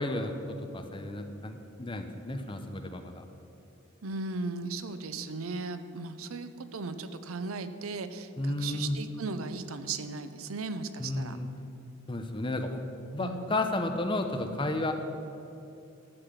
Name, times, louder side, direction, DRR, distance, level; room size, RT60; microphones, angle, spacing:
voice 1, 0.0-3.2 8.4-9.0 11.0-11.5 12.1-12.9 13.1-14.9, left 2 dB, 25° left, 6 dB, 0.8 m, -32 dB
voice 2, 4.0-11.4 13.2-13.6, right 3 dB, 85° right, 11 dB, 0.7 m, -37 dB
12.0 x 5.9 x 8.1 m, 2.8 s
head